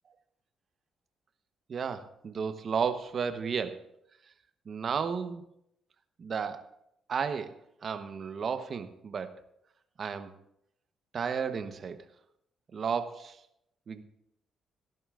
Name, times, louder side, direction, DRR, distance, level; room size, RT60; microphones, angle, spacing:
voice 1, 1.7-3.8 4.7-5.4 6.2-6.7 7.1-9.4 10.0-10.3 11.1-12.0 12.7-13.4 13.9-14.0, right 6 dB, 50° right, 9 dB, 1.0 m, -33 dB
19.0 x 11.0 x 2.5 m, 0.77 s
cardioid pair, 90°, 0 cm